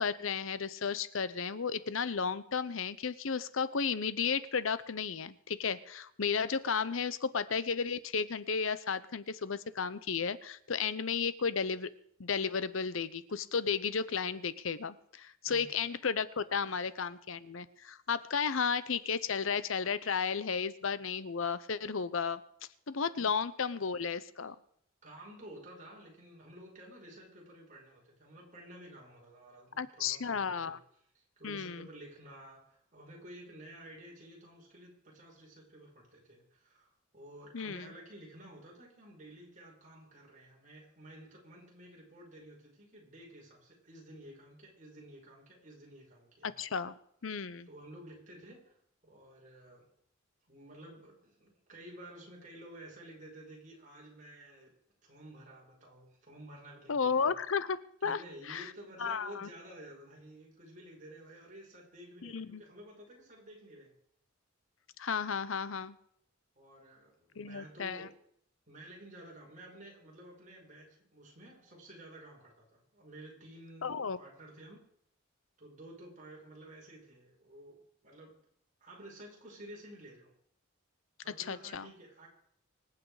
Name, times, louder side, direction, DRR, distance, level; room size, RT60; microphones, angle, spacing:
voice 1, 0.0-11.9 12.2-22.4 22.9-24.6 29.8-30.8 31.4-31.9 37.5-37.9 46.4-47.0 47.2-47.7 56.9-58.2 58.5-58.7 59.0-59.5 62.2-62.6 65.0-66.0 67.4-68.1 73.8-74.2 81.4-81.9, left 6 dB, 75° left, 16 dB, 0.8 m, -33 dB
voice 2, 15.5-15.8 16.6-16.8 23.2-23.3 24.4-24.5 25.0-30.8 31.1-46.5 47.7-48.8 49.0-49.8 50.5-54.7 55.0-57.4 58.0-63.9 66.6-68.1 68.7-74.8 75.6-78.4 78.8-80.3 81.2-82.3, right 1 dB, 40° right, -2 dB, 5.5 m, -52 dB
25.0 x 8.7 x 4.9 m, 0.69 s
head